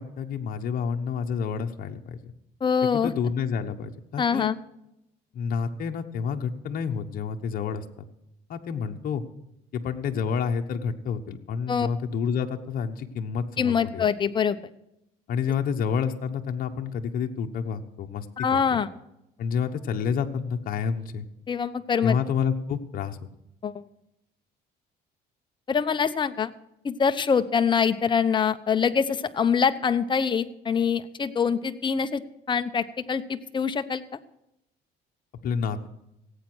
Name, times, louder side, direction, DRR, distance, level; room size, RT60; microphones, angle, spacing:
voice 1, 0.0-2.3 2.9-4.5 5.3-8.0 8.5-9.2 9.7-14.0 15.3-18.3 18.5-18.6 19.4-21.3 22.0-23.2 35.4-35.9, left 6 dB, 55° left, 4 dB, 1.1 m, -29 dB
voice 2, 2.6-3.1 4.2-4.6 11.7-11.9 13.6-14.6 18.4-18.9 21.5-22.2 23.6-23.8 25.7-26.5 26.8-32.2 32.5-34.2, left 6 dB, 30° left, 9 dB, 0.9 m, -24 dB
17.0 x 8.6 x 6.2 m, 0.83 s
cardioid pair, 110°, 17 cm